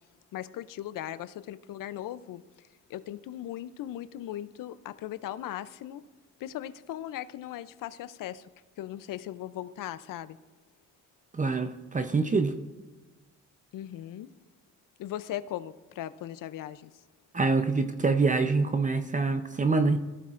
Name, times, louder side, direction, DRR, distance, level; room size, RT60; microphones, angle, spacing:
voice 1, 0.3-2.4 2.9-6.0 6.4-8.5 8.8-10.4 13.7-14.3 15.0-16.9, left 12 dB, 85° left, 15 dB, 0.6 m, -38 dB
voice 2, 11.3-12.5 17.3-20.0, right 4 dB, 25° right, 9 dB, 0.7 m, -25 dB
18.5 x 15.5 x 2.5 m, 1.2 s
cardioid pair, 115°, 32 cm